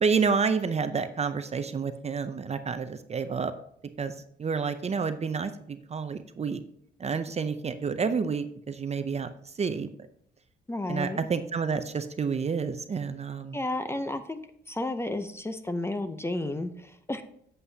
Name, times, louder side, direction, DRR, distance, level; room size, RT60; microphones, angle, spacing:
voice 1, 0.0-3.5 4.0-4.1 4.4-6.6 7.0-9.3 9.6-9.9 10.9-13.6, right 5 dB, 35° right, 10 dB, 0.6 m, -29 dB
voice 2, 10.7-11.2 13.5-14.4 14.7-17.2, left 2 dB, 10° left, 10 dB, 0.6 m, -32 dB
7.8 x 7.8 x 2.8 m, 0.68 s
cardioid pair, 90°, 20 cm